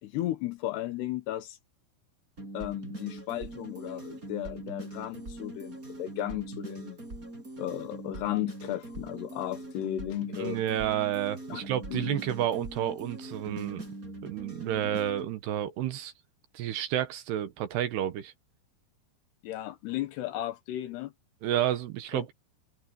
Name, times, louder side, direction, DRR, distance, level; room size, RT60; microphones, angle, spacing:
voice 1, 0.0-1.6 2.5-7.0 7.6-10.6 11.5-11.6 11.9-12.2 19.4-21.1 22.1-22.3, left 14 dB, 75° left, 2.8 m, -35 dB
sound 1, 2.4-15.3, right 2 dB, 20° right, 6.0 m, -42 dB
voice 2, 10.4-13.9 14.2-16.1 16.5-18.3 21.4-22.3, right 11 dB, 70° right, 3.0 m, -30 dB
omnidirectional pair, 5.4 m